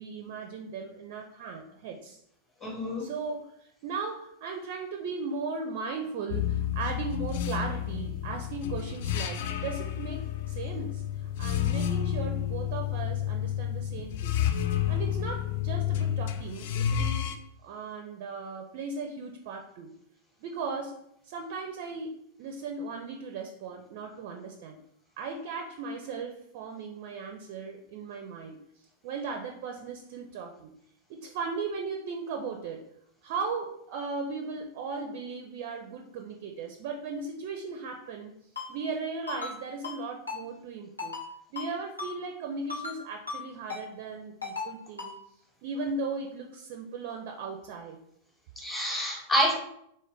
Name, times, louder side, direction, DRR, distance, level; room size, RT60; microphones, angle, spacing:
voice 1, 0.0-2.2 3.0-14.4 14.9-17.3 17.6-19.9 20.4-24.8 25.2-28.6 29.0-30.7 31.1-32.9 33.2-38.3 38.7-41.2 41.5-45.1 45.6-48.0, right 4 dB, 50° right, 3 dB, 0.4 m, -37 dB
voice 2, 2.6-3.0 48.6-49.5, equal, 10° left, -4 dB, 1.0 m, -27 dB
sound 1, 6.3-17.3, left 10 dB, 50° left, 0.3 m, -30 dB
Ringtone, 38.6-38.7 39.3-39.5 39.8-40.0 40.3-40.4 41.0-41.3 41.6-41.7 42.0-42.1 42.7-43.0 43.3-43.4 43.7-43.8 44.4-44.7 45.0-45.1, left 4 dB, 80° left, 0.8 m, -36 dB
3.8 x 2.5 x 3.3 m, 0.73 s
figure-of-eight pair, 90°, 0 cm